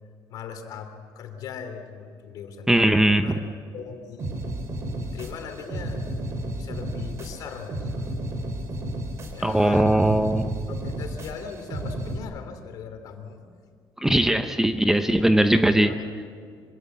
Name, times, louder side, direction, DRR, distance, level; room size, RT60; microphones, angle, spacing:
voice 1, 0.3-3.4 3.7-4.2 5.0-6.1 6.6-8.1 9.3-9.9 10.7-13.5 15.3-16.0, left 7 dB, 60° left, 6 dB, 3.0 m, -39 dB
voice 2, 2.7-3.2 9.4-10.5 14.0-16.0, right 1 dB, 5° right, 9 dB, 0.7 m, -20 dB
sound 1, 4.2-12.2, right 1 dB, 40° right, 3.4 m, -32 dB
25.0 x 17.0 x 8.4 m, 2.2 s
cardioid pair, 150°, 7 cm